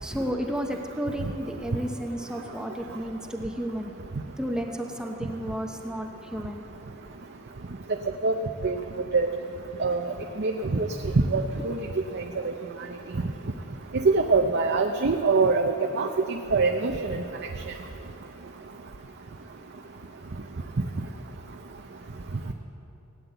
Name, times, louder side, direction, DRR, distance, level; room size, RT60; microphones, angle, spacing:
voice 1, 0.0-3.9 4.4-6.6, equal, 5° right, 3 dB, 0.8 m, -32 dB
voice 2, 9.8-10.1 10.4-10.9 11.3-11.8 12.1-12.5 13.9-17.2, right 4 dB, 50° right, 4 dB, 0.7 m, -24 dB
17.5 x 9.5 x 8.0 m, 3.0 s
head